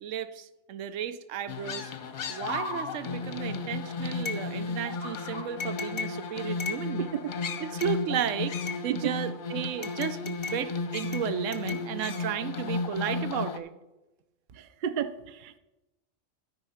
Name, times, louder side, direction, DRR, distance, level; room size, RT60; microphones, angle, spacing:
voice 1, 0.0-1.9 2.3-7.2 7.6-13.7, right 9 dB, 90° right, 13 dB, 1.0 m, -34 dB
sound 1, 1.5-13.6, left 4 dB, 50° left, 0.8 m, -33 dB
voice 2, 14.8-15.6, right 9 dB, 55° right, 12 dB, 0.6 m, -31 dB
13.5 x 4.5 x 5.6 m, 1.0 s
omnidirectional pair, 1.3 m